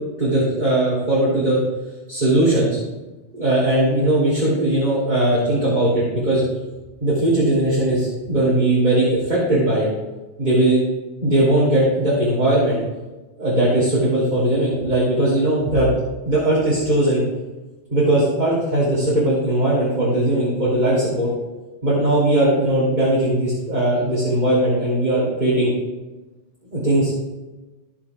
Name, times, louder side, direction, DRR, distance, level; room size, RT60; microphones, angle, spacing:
voice 1, 0.2-1.6 2.1-2.8 3.4-6.4 7.0-9.9 10.4-10.8 11.2-12.8 13.4-15.9 16.2-17.2 17.9-21.3 21.8-25.7 26.7-27.1, right 1 dB, 35° right, -8 dB, 2.9 m, -19 dB
15.0 x 7.1 x 2.3 m, 1.1 s
omnidirectional pair, 1.3 m